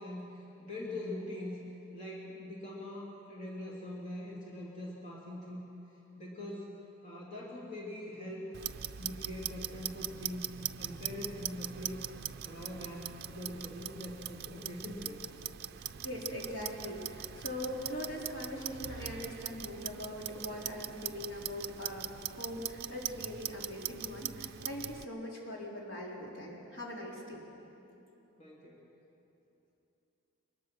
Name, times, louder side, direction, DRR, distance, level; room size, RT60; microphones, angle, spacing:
voice 1, 0.0-1.6 1.9-5.7 6.2-6.7 7.0-8.5 9.0-10.5 10.8-12.1 12.4-15.2 28.4-28.8, left 1 dB, 35° left, -4 dB, 3.0 m, -43 dB
Clock, 8.5-25.0, right 11 dB, 50° right, 0.4 m, -41 dB
voice 2, 15.8-27.5, left 1 dB, 65° left, -3 dB, 4.1 m, -41 dB
24.0 x 21.0 x 6.2 m, 2.9 s
head